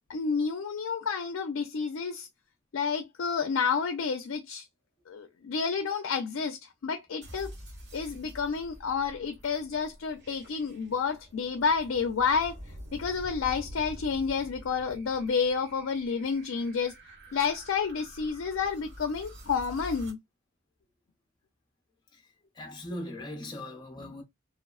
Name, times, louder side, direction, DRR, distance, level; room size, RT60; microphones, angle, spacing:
voice 1, 0.1-2.3 2.7-4.7 5.1-7.5 7.9-12.6 12.9-16.9 17.3-20.2, left 5 dB, 75° left, 0.4 m, -30 dB
sound 1, 7.2-20.1, equal, 60° right, 1.1 m, -47 dB
voice 2, 22.5-24.2, left 1 dB, 20° left, 0.6 m, -39 dB
2.9 x 2.0 x 2.3 m
head